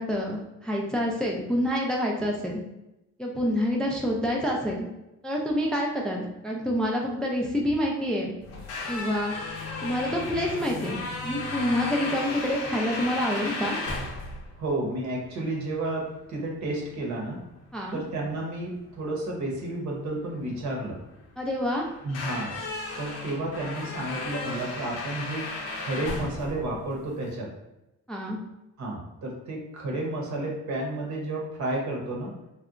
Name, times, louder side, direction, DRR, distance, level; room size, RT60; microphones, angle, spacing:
voice 1, 0.0-2.6 3.2-4.9 5.2-8.3 8.9-9.3 9.8-11.0 11.2-13.8 17.7-18.0 21.4-21.9 28.1-28.4, equal, 5° left, -1 dB, 0.3 m, -27 dB
sound 1, 8.4-27.3, left 3 dB, 55° left, 0.6 m, -36 dB
voice 2, 14.6-17.4 17.9-21.0 22.0-22.6 23.0-25.5 25.8-27.5 28.8-32.3, right 2 dB, 70° right, -1 dB, 0.8 m, -31 dB
2.7 x 2.2 x 2.3 m, 0.94 s
cardioid pair, 90°, 30 cm